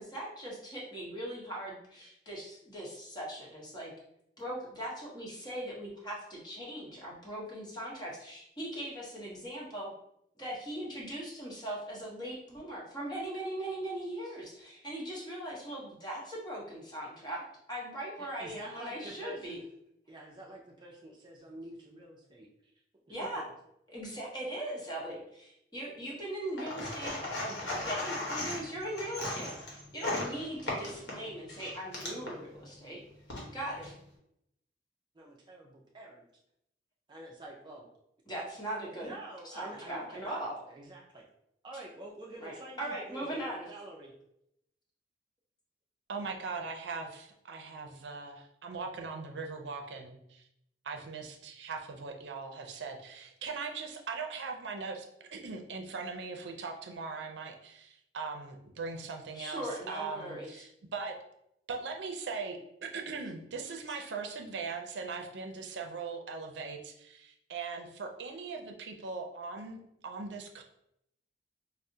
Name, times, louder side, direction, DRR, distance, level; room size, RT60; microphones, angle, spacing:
voice 1, 0.0-3.9 4.4-9.9 10.4-19.6 23.1-23.4 23.9-27.2 27.4-33.0 33.5-33.9 38.3-39.1 39.4-40.6 42.4-43.7 59.3-60.6 63.9-64.0, right 1 dB, 25° left, -4 dB, 0.9 m, -40 dB
voice 2, 18.2-19.6 20.1-22.5 23.1-23.4 35.2-36.2 37.1-37.9 39.0-41.2 41.6-43.4 43.7-44.1, right 2 dB, 25° right, -2 dB, 0.4 m, -47 dB
sound 1, 26.6-32.3 33.1-33.9, left 2 dB, 85° left, 1.0 m, -37 dB
voice 3, 46.1-50.4 50.8-55.0 55.3-61.1 61.7-62.6 62.9-70.6, right 4 dB, 80° right, 2 dB, 0.5 m, -40 dB
4.6 x 2.0 x 2.7 m, 0.77 s
head